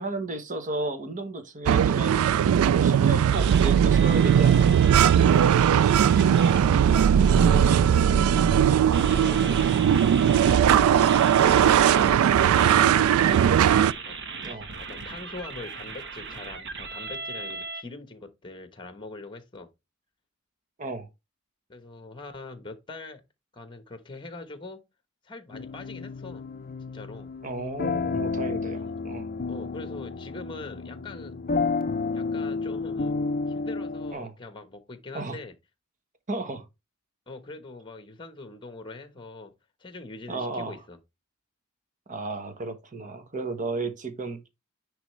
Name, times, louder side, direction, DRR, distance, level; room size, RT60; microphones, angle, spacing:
voice 1, 0.0-2.2 2.7-4.7 9.2-9.4 14.4-14.7 20.8-21.1 27.4-29.3 34.1-34.3 35.1-35.3 36.3-36.7 40.3-40.8 42.1-44.4, right 2 dB, 40° right, 1.1 m, -33 dB
sound 1, 1.7-13.9, right 8 dB, 80° right, 0.3 m, -19 dB
sound 2, 3.3-6.6 7.2-8.5 8.9-17.8, right 4 dB, 60° right, 1.1 m, -38 dB
voice 2, 6.3-9.7 10.7-12.2 12.7-13.7 14.0-14.2 14.4-19.7 21.7-23.2 23.5-24.8 25.2-26.5 26.9-27.3 28.8-28.9 29.5-31.4 32.1-33.2 33.5-35.5 37.3-39.5 39.8-41.0, left 2 dB, 25° left, 1.1 m, -42 dB
sound 3, 25.5-34.1, left 4 dB, 45° left, 0.5 m, -31 dB
9.9 x 3.4 x 3.1 m
head